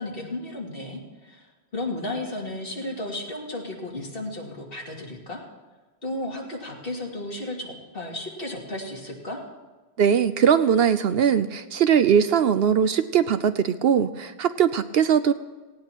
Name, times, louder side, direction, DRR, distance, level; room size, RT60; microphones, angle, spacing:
voice 1, 0.0-1.5 1.7-5.4 6.0-9.4, left 1 dB, 55° left, -2 dB, 2.7 m, -34 dB
voice 2, 10.0-15.3, right 8 dB, 70° right, 12 dB, 0.8 m, -20 dB
18.0 x 17.0 x 3.0 m, 1.3 s
omnidirectional pair, 1.1 m